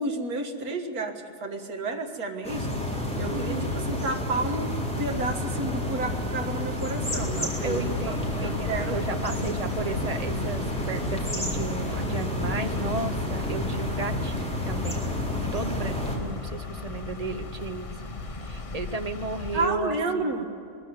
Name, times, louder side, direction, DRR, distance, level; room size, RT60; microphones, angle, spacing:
voice 1, 0.0-2.7 3.2-7.8 8.1-9.0 12.4-12.6 19.5-20.5, right 2 dB, 70° right, 3 dB, 2.2 m, -31 dB
sound 1, 2.4-16.2, left 1 dB, 5° left, 4.0 m, -30 dB
voice 2, 3.3-3.8 7.6-17.9 18.4-20.3, right 3 dB, 30° right, 8 dB, 0.9 m, -34 dB
sound 2, 7.0-19.7, left 3 dB, 25° left, 0.8 m, -38 dB
22.0 x 15.0 x 9.5 m, 2.7 s
omnidirectional pair, 1.6 m